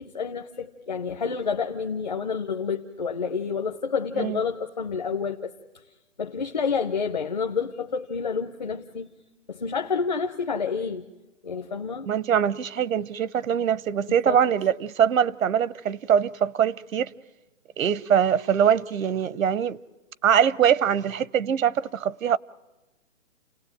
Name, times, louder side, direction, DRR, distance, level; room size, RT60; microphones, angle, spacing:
voice 1, 0.0-5.5 6.2-9.1 9.5-11.1 11.4-12.1 12.5-12.6 14.2-14.4, left 5 dB, 35° left, 0.8 m, -29 dB
voice 2, 12.1-17.1 17.8-19.8 20.2-22.4, right 8 dB, 85° right, 0.8 m, -23 dB
29.5 x 18.0 x 8.9 m
hypercardioid pair, 180°, 39 cm